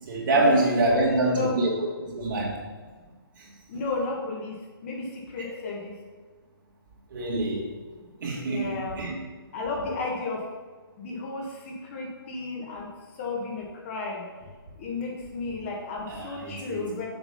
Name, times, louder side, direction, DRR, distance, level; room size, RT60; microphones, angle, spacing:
voice 1, 0.0-2.5 3.4-3.5 5.4-5.5 7.1-7.7 8.2-8.7 9.0-9.2 16.1-16.9, right 2 dB, 55° right, -4 dB, 2.6 m, -25 dB
voice 2, 0.9-1.6 3.7-4.5 4.8-5.1 5.3-5.9 8.4-9.0 9.5-10.4 11.0-11.4 11.9-12.9 13.2-14.2 14.8-17.1, left 3 dB, 35° left, -2 dB, 1.6 m, -32 dB
7.2 x 5.0 x 5.6 m, 1.4 s
figure-of-eight pair, 140°, 13 cm